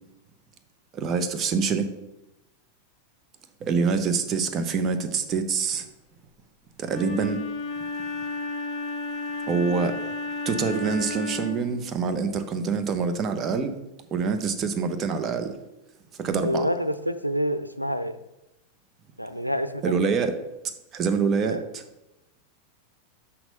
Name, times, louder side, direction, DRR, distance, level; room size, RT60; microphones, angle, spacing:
voice 1, 0.9-1.9 3.6-5.8 6.8-7.4 9.5-9.9 10.4-13.7 14.1-15.5 16.2-16.7 19.8-20.4 20.9-21.8, right 5 dB, 30° right, 0.8 m, -25 dB
Wind instrument woodwind instrument, 6.9-11.7, left 2 dB, 30° left, 1.3 m, -32 dB
voice 2, 16.4-18.2 19.2-20.0 21.4-21.6, equal, 90° left, 0.4 m, -27 dB
6.1 x 5.7 x 5.2 m
figure-of-eight pair, 90°, 0 cm